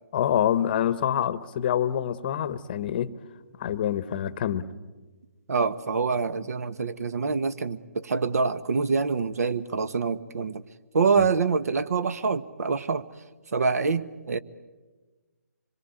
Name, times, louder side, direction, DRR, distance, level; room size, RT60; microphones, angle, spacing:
voice 1, 0.1-3.2 3.6-4.7 11.2-11.3, left 10 dB, 35° left, 16 dB, 0.9 m, -26 dB
voice 2, 5.5-10.6 10.9-13.0 13.5-14.4, right 5 dB, 65° right, 14 dB, 1.2 m, -26 dB
26.0 x 22.5 x 9.1 m, 1.3 s
hypercardioid pair, 160°, 9 cm